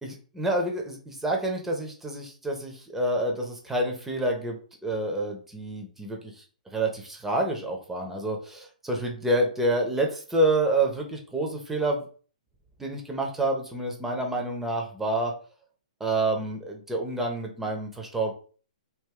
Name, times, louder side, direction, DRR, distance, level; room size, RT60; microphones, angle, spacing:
voice 1, 0.0-4.6 4.8-6.3 6.7-12.0 12.8-15.3 16.0-18.3, right 1 dB, 5° right, 1 dB, 0.8 m, -28 dB
3.1 x 2.5 x 3.7 m, 0.40 s
hypercardioid pair, 125°, 4 cm